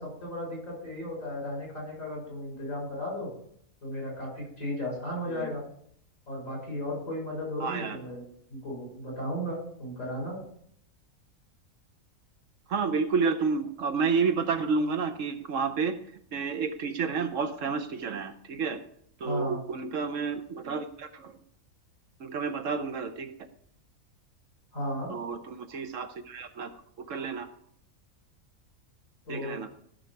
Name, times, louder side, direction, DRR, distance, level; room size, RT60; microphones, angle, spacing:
voice 1, 0.0-3.3 3.8-5.6 6.3-8.2 8.5-10.4 19.2-19.6 24.7-25.1 29.3-29.6, left 1 dB, 70° left, -2 dB, 6.2 m, -35 dB
voice 2, 7.6-8.0 12.7-16.0 16.3-18.8 19.2-21.3 22.2-23.3 25.1-26.7 27.0-27.5 29.3-29.7, right 5 dB, 65° right, 9 dB, 1.2 m, -30 dB
14.0 x 6.4 x 4.6 m, 0.68 s
omnidirectional pair, 1.4 m